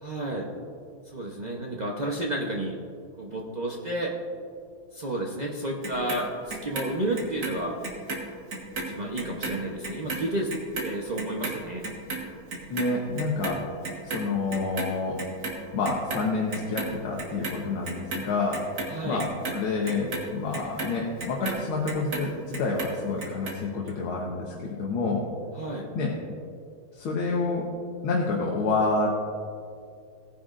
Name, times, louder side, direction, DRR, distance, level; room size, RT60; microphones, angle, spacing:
voice 1, 0.0-0.5 1.1-2.8 3.2-4.1 4.9-7.8 8.9-10.5 10.8-11.8 18.9-19.2 25.6-25.9, right 1 dB, 85° right, -2 dB, 0.3 m, -31 dB
Clock, 5.8-8.2 8.5-14.9 15.2-16.2 16.5-17.5 17.8-22.3 22.5-23.5 23.9-24.0, right 3 dB, 50° right, 1.8 m, -34 dB
voice 2, 12.7-13.6 14.0-15.2 15.7-25.3 25.9-26.1 26.9-27.7 28.0-29.1, left 3 dB, 80° left, -3 dB, 2.0 m, -28 dB
17.5 x 10.0 x 2.5 m, 2.3 s
omnidirectional pair, 2.3 m